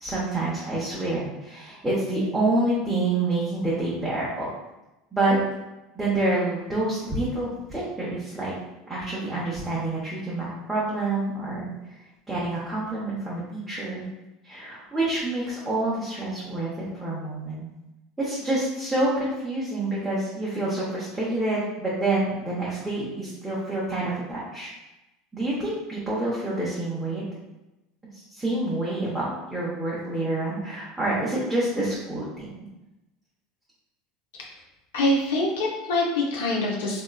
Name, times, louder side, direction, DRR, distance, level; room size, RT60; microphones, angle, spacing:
voice 1, 0.0-4.5 5.1-5.4 5.9-8.5 8.9-11.9 12.3-14.1 14.4-17.7 18.2-24.7 25.3-27.3 28.3-32.5 35.6-35.7, right 2 dB, 5° right, -9 dB, 0.7 m, -27 dB
voice 2, 34.9-37.0, left 1 dB, 90° left, -2 dB, 0.6 m, -24 dB
2.8 x 2.4 x 2.3 m, 0.98 s
supercardioid pair, 120°, 0 cm